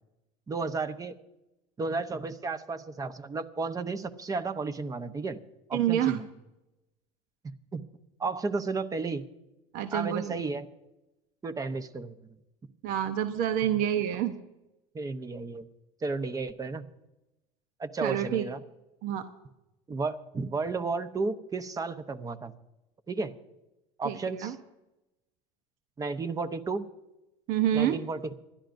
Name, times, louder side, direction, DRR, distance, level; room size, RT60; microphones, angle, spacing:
voice 1, 0.5-1.1 1.8-5.4 5.7-6.3 7.7-7.8 8.2-9.2 9.9-10.7 11.4-12.1 14.9-15.7 16.0-16.8 17.8-18.6 19.9-22.5 23.1-23.3 24.0-24.5 26.0-26.9 27.7-28.3, right 4 dB, 20° right, 10 dB, 0.9 m, -33 dB
voice 2, 5.7-6.2 9.7-10.4 12.8-14.4 18.0-18.5 19.0-19.3 24.0-24.6 27.5-28.0, right 10 dB, 60° right, 8 dB, 0.9 m, -28 dB
27.5 x 11.5 x 2.6 m, 0.96 s
supercardioid pair, 105°, 16 cm